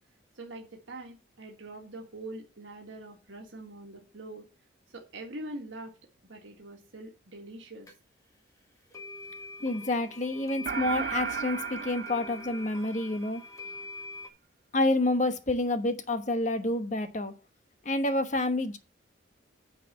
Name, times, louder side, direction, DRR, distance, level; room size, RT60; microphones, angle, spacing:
voice 1, 0.4-4.5 4.9-6.0 6.3-7.9, right 2 dB, 80° right, 1.7 m, -43 dB
sound 1, 7.9-8.0 8.9-14.3, left 3 dB, 15° left, 1.6 m, -43 dB
voice 2, 9.6-13.4 14.7-17.3 17.8-18.8, left 2 dB, 40° left, 1.1 m, -28 dB
sound 2, 10.7-13.3, right 7 dB, 50° right, 0.4 m, -35 dB
9.2 x 4.8 x 6.7 m
head